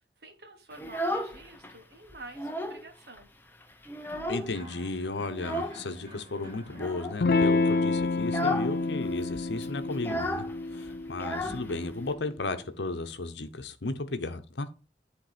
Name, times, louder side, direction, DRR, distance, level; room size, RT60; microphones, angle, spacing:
voice 1, 0.2-3.3, right 2 dB, 65° right, 1.5 m, -48 dB
Child speech kid speaking, 0.7-1.7 2.1-2.9 3.2-3.3 3.6-4.7 5.3-5.8 6.7-7.2 7.6-7.8 8.2-8.8 9.0-9.1 9.3-12.1, left 1 dB, 10° left, 0.7 m, -34 dB
sound 1, 4.1-9.8, equal, 25° right, 2.2 m, -50 dB
voice 2, 4.3-10.4 10.7-14.7, left 2 dB, 85° left, 0.9 m, -34 dB
Electric guitar / Strum, 7.2-12.3, left 3 dB, 55° left, 0.4 m, -29 dB
10.5 x 3.5 x 5.0 m
head